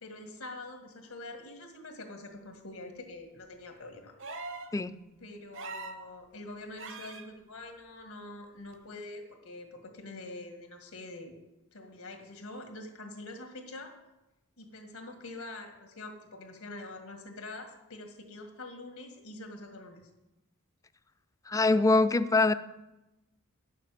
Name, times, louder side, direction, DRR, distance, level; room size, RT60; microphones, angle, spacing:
voice 1, 0.0-4.1 5.2-11.3 11.7-13.9 14.6-20.0, left 2 dB, 85° left, 4 dB, 1.9 m, -45 dB
sound 1, 4.2-4.7 5.5-6.0 6.8-7.3 8.7-8.8, right 3 dB, 60° right, 1.0 m, -41 dB
voice 2, 21.5-22.5, left 3 dB, 15° left, 14 dB, 0.4 m, -23 dB
9.8 x 6.6 x 7.7 m, 0.98 s
head